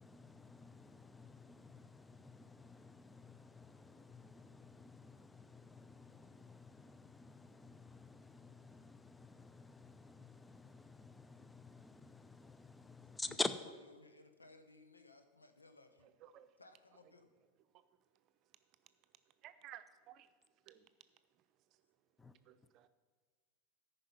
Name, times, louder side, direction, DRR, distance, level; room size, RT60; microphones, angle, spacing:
voice 1, 0.0-13.6 22.2-22.3, left 3 dB, 10° left, 0.6 m, -48 dB
voice 2, 14.0-16.1 16.6-17.3, left 2 dB, 85° left, 0.9 m, -61 dB
voice 3, 19.4-20.3 20.7-20.9 22.4-22.9, right 12 dB, 45° right, 0.7 m, -56 dB
13.5 x 5.4 x 5.7 m
figure-of-eight pair, 85°, 0 cm